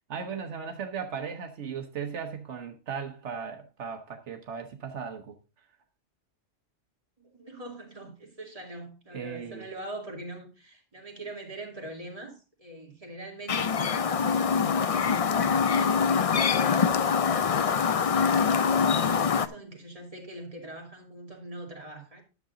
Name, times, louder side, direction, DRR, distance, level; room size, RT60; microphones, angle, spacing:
voice 1, 0.1-5.4 9.1-9.7, right 6 dB, 80° right, 1.3 m, -37 dB
voice 2, 7.2-17.0 17.5-22.2, right 1 dB, 30° right, 2.6 m, -43 dB
Chirp tweet, 13.5-19.5, left 6 dB, 50° left, 0.4 m, -24 dB
11.0 x 7.1 x 3.7 m
omnidirectional pair, 1.2 m